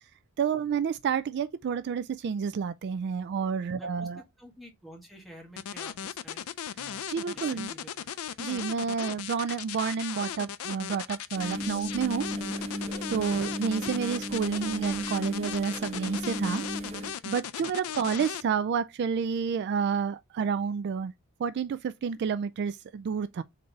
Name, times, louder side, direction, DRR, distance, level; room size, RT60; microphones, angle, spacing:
voice 1, 0.4-4.2 7.1-7.7 8.4-12.3 13.1-16.6 17.3-21.1 21.4-23.4, right 6 dB, 55° right, 0.3 m, -30 dB
voice 2, 3.7-6.4 6.8-7.0 7.3-8.1 13.3-13.6 17.6-17.7, equal, ahead, 1.5 m, -50 dB
sound 1, 5.6-18.4, left 9 dB, 80° left, 0.4 m, -37 dB
sound 2, 11.3-17.1, equal, 30° right, 0.9 m, -35 dB
3.9 x 3.3 x 3.9 m
head